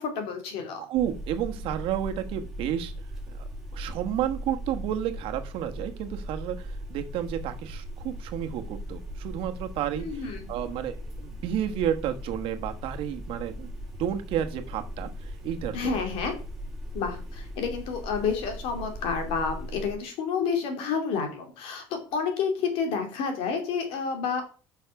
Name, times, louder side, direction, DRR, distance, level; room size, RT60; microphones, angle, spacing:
voice 1, 0.0-0.9 9.9-10.5 15.7-16.3 16.9-24.4, left 5 dB, 80° left, 5 dB, 2.6 m, -30 dB
voice 2, 0.8-2.9 3.3-3.4 3.7-10.2 10.5-13.7 14.0-16.0, right 10 dB, 75° right, 6 dB, 1.2 m, -31 dB
sound 1, 0.9-19.9, equal, 5° right, 3.3 m, -38 dB
6.7 x 5.7 x 5.8 m, 0.38 s
cardioid pair, 110°, 9 cm